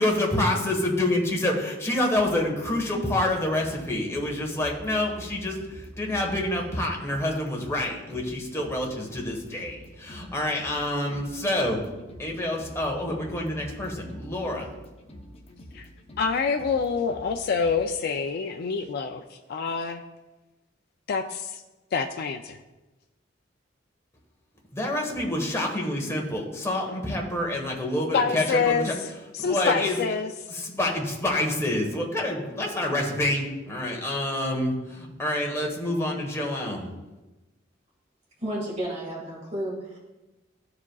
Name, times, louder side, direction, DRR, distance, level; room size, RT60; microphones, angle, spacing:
voice 1, 0.0-11.8 12.2-14.6 24.7-28.9 29.4-30.0 30.5-36.9, left 1 dB, 15° left, -1 dB, 1.2 m, -27 dB
sound 1, 2.1-17.8, equal, 30° left, 0.7 m, -46 dB
voice 2, 16.2-19.2 19.5-20.0 21.1-21.6 21.9-22.6 28.1-28.9 29.3-30.3, left 5 dB, 55° left, 5 dB, 0.3 m, -26 dB
voice 3, 38.4-40.0, right 1 dB, 35° right, -5 dB, 1.9 m, -32 dB
13.0 x 4.9 x 2.3 m, 1.1 s
head